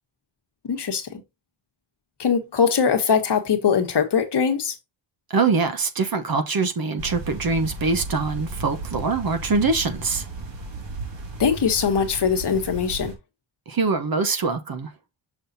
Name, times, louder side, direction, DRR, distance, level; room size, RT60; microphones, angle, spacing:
voice 1, 0.6-1.2 2.2-4.7 11.4-13.1, left 6 dB, 60° left, 1.4 m, -21 dB
voice 2, 5.3-10.3 13.7-14.9, right 4 dB, 45° right, 1.1 m, -23 dB
sound 1, 7.0-13.1, right 2 dB, 65° right, 2.3 m, -35 dB
6.3 x 5.6 x 2.7 m
wide cardioid pair, 105°, 47 cm